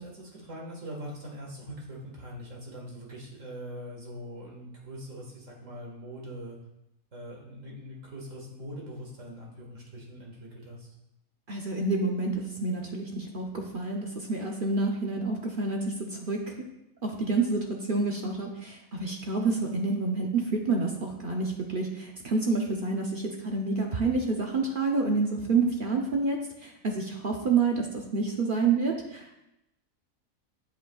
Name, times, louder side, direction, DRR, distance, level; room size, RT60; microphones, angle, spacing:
voice 1, 0.0-6.6 7.1-10.9, equal, 60° right, -2 dB, 2.0 m, -42 dB
voice 2, 11.5-16.5 17.0-29.3, right 3 dB, 45° right, 0 dB, 0.8 m, -28 dB
9.0 x 8.1 x 2.3 m, 0.90 s
omnidirectional pair, 1.5 m